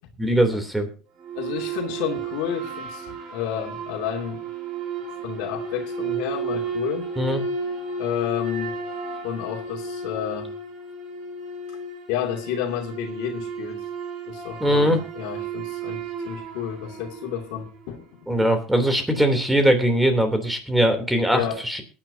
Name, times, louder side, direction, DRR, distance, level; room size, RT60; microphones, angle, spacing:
voice 1, 0.2-0.9 7.2-7.4 14.6-15.0 18.3-21.8, equal, 5° right, 7 dB, 3.1 m, -21 dB
sound 1, 1.2-17.8, right 3 dB, 50° right, 5.2 m, -33 dB
voice 2, 1.3-4.4 5.2-7.1 8.0-8.8 9.2-10.5 12.1-13.8 14.3-18.4 21.3-21.6, left 9 dB, 65° left, 2 dB, 2.6 m, -31 dB
22.0 x 9.8 x 2.8 m, 0.37 s
hypercardioid pair, 85°, 0 cm